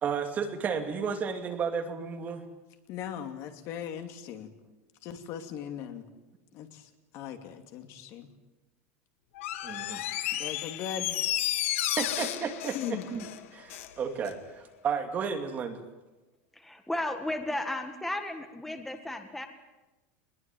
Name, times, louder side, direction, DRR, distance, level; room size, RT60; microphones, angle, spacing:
voice 1, 0.0-2.4 9.6-10.0 11.8-15.8, right 6 dB, 25° right, 5 dB, 2.6 m, -33 dB
voice 2, 2.9-4.5 5.0-6.0 6.5-8.3 10.3-11.2 12.7-13.1, left 9 dB, 40° left, 7 dB, 2.6 m, -39 dB
Door, 9.4-13.9 14.3-14.4, left 13 dB, 85° left, 1.9 m, -32 dB
voice 3, 16.5-19.5, left 1 dB, 5° left, 6 dB, 1.7 m, -34 dB
22.0 x 21.0 x 9.3 m, 1.1 s
supercardioid pair, 170°, 7 cm